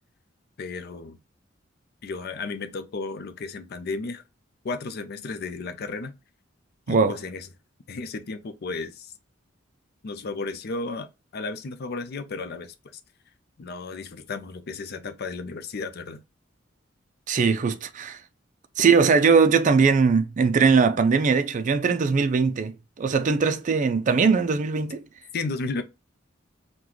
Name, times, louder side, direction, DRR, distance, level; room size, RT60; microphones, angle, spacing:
voice 1, 0.6-1.2 2.0-4.2 4.6-6.1 6.9-7.5 7.9-9.1 10.0-13.0 13.6-16.2 25.3-25.8, left 3 dB, 55° left, 0.5 m, -33 dB
voice 2, 17.3-18.2 18.8-25.0, right 5 dB, 40° right, 0.4 m, -20 dB
3.9 x 2.2 x 3.0 m
head